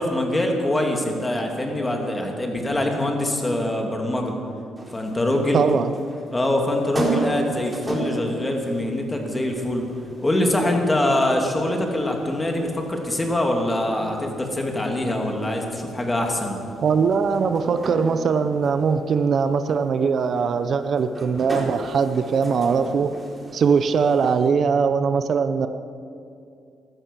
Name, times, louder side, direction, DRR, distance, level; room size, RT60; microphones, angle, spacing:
voice 1, 0.0-4.3 4.9-5.6 6.3-9.9 10.2-16.6, left 1 dB, 15° left, 2 dB, 2.7 m, -24 dB
sound 1, 4.8-24.5, right 2 dB, 20° right, 4.0 m, -36 dB
voice 2, 5.5-5.9 16.8-23.1 23.5-25.7, right 5 dB, 55° right, 10 dB, 0.7 m, -21 dB
15.0 x 12.5 x 7.4 m, 2.4 s
cardioid pair, 90°, 0 cm